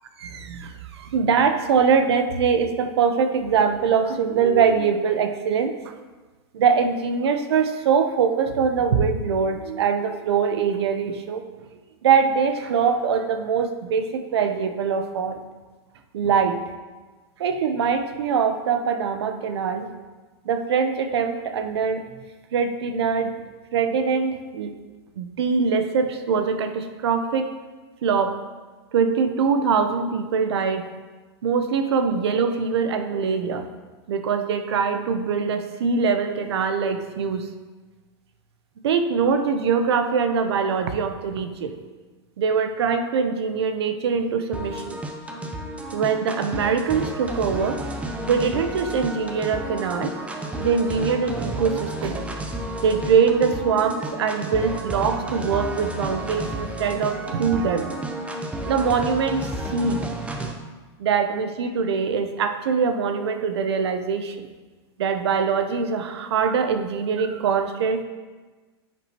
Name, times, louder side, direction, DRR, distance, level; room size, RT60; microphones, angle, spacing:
voice 1, 0.2-5.7 6.5-11.4 12.0-15.4 16.1-16.6 17.4-19.9 20.4-22.0 22.5-23.3 23.7-24.7 25.2-27.5 28.0-28.4 28.9-30.9 31.4-33.7 34.1-37.5 38.8-41.8 42.4-45.0 45.9-47.8 48.3-50.1 50.6-52.2 52.8-57.9 58.7-60.0 61.0-64.5 65.0-68.0, right 6 dB, 85° right, 8 dB, 0.8 m, -23 dB
sound 1, 44.5-60.5, right 1 dB, 10° right, 0.7 m, -32 dB
9.8 x 6.2 x 3.0 m, 1.3 s
supercardioid pair, 140°, 13 cm